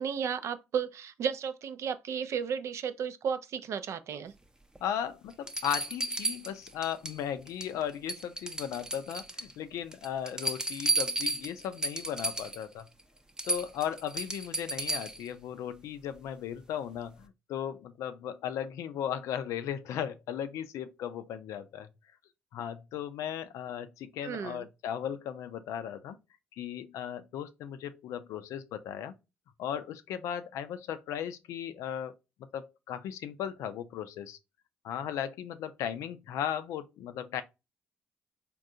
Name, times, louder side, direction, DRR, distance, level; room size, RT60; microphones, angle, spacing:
voice 1, 0.0-4.3 24.2-24.6, right 7 dB, 70° right, 0.4 m, -33 dB
voice 2, 4.8-12.9 13.4-21.9 22.5-26.2 26.6-29.1 29.6-32.1 32.5-34.4 34.8-37.4, left 9 dB, 85° left, 0.4 m, -36 dB
sound 1, 4.8-4.9 5.5-7.2 7.5-7.8 8.1-9.5 9.9-12.6 13.0-13.1 13.4-15.3 17.0-17.1, right 2 dB, 15° right, 0.6 m, -33 dB
3.7 x 2.3 x 2.6 m
supercardioid pair, 55°, 5 cm